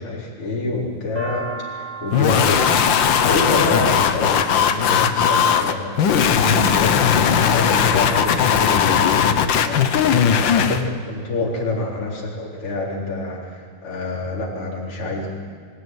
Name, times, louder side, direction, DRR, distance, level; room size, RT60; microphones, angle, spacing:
voice 1, 0.0-2.7 3.2-15.3, left 2 dB, 45° left, -3 dB, 4.9 m, -27 dB
sound 1, 0.7-4.9 5.8-6.2 6.8-7.5 7.8-8.9, right 6 dB, 70° right, 7.0 m, -37 dB
sound 2, 2.1-10.8, left 8 dB, 80° left, 1.0 m, -18 dB
24.0 x 17.5 x 9.3 m, 2.1 s
omnidirectional pair, 3.6 m